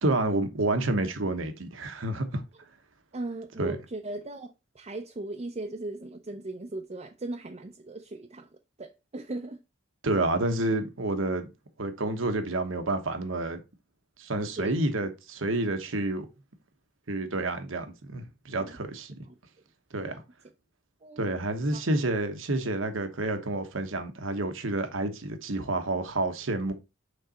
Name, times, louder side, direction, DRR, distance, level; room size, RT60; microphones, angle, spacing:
voice 1, 0.0-2.4 3.6-3.8 10.0-11.5 11.8-13.6 14.2-16.3 17.1-19.2 19.9-20.1 21.2-26.7, right 2 dB, 90° right, 1.2 m, -29 dB
voice 2, 3.1-8.5 8.8-9.6 14.6-14.7 18.5-18.8 20.1-20.2 21.0-21.3 21.7-21.8, right 2 dB, 35° right, 0.6 m, -38 dB
6.6 x 4.0 x 4.2 m
head